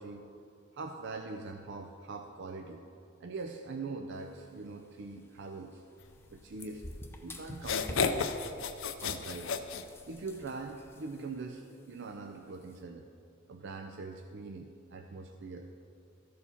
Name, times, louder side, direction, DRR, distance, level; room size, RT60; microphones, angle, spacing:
voice 1, 0.0-2.8 3.2-5.8 6.3-6.8 7.2-8.3 9.0-9.6 10.1-13.1 13.5-15.7, right 3 dB, 65° right, 4 dB, 0.5 m, -43 dB
sound 1, 4.1-12.8, left 1 dB, 10° left, 0.6 m, -50 dB
sound 2, 7.0-7.1 7.5-10.4, left 5 dB, 70° left, 0.5 m, -32 dB
13.5 x 4.7 x 5.6 m, 2.4 s
head